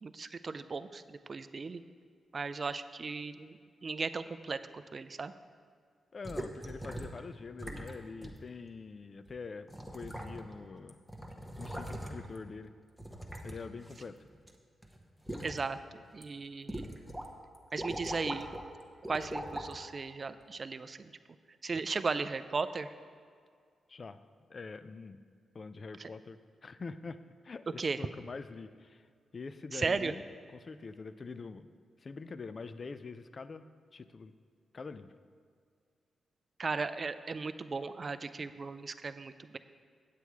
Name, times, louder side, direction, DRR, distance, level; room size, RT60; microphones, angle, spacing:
voice 1, 0.0-1.8 2.3-5.3 15.4-17.0 17.7-18.5 19.1-21.1 21.6-22.9 26.0-26.1 27.8-28.0 29.7-30.1 36.6-39.6, right 4 dB, 40° right, 12 dB, 0.4 m, -36 dB
voice 2, 6.1-9.7 9.9-11.0 11.6-12.7 13.4-14.2 23.9-24.2 24.5-25.2 25.5-27.2 27.4-29.0 29.3-30.2 30.5-31.7 32.0-33.7 33.9-34.3 34.7-35.1, left 4 dB, 40° left, 12 dB, 0.4 m, -44 dB
sound 1, 6.2-7.2 7.6-7.9 8.2-8.4 9.3-9.4 9.7-10.6 10.9-12.4 13.0-14.5 14.8-15.6 16.1-16.2 16.7-17.3 17.5-18.6 19.0-19.7 20.4-20.5, right 1 dB, ahead, 0.9 m, -41 dB
8.4 x 8.2 x 4.6 m, 2.1 s
cardioid pair, 100°, 0 cm